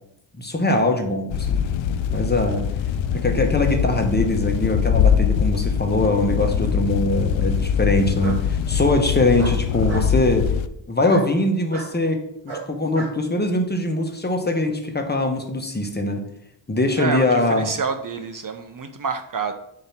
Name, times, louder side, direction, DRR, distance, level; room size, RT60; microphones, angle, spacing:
voice 1, 0.4-1.7 2.1-2.6 3.1-10.5 10.9-12.2 12.7-16.2 16.7-17.7, left 2 dB, 20° left, 3 dB, 1.0 m, -22 dB
sound 1, 1.3-10.7, left 8 dB, 70° left, 0.5 m, -22 dB
Bark, 8.2-8.4 9.4-10.1 11.0-11.3 11.7-11.9 12.5-13.2, right 4 dB, 65° right, 1.8 m, -35 dB
voice 2, 17.0-19.5, right 5 dB, 45° right, 7 dB, 0.6 m, -28 dB
7.0 x 2.9 x 5.8 m, 0.76 s
cardioid pair, 75°, 48 cm